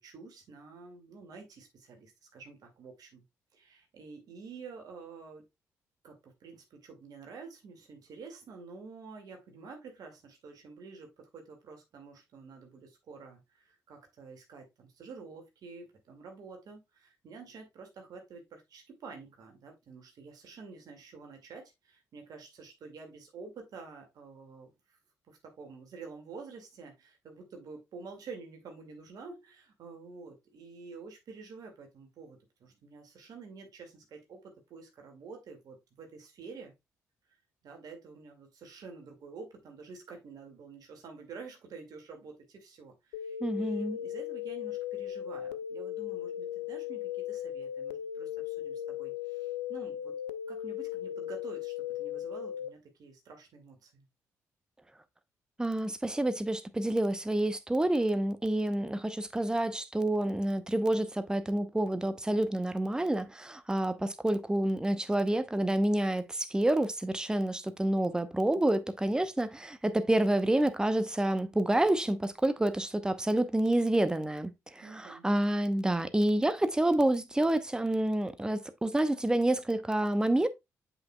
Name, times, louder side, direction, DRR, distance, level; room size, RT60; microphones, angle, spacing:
voice 1, 0.0-3.2 3.5-5.4 6.0-25.0 25.3-36.7 37.6-50.1 50.5-54.0 74.8-75.2, right 4 dB, 55° right, 2.1 m, -49 dB
sound 1, 43.1-52.7, left 11 dB, 75° left, 0.4 m, -37 dB
voice 2, 43.4-44.0 55.6-74.5 75.0-80.5, right 1 dB, 10° right, 0.8 m, -28 dB
7.8 x 6.0 x 2.3 m
figure-of-eight pair, 40°, 8 cm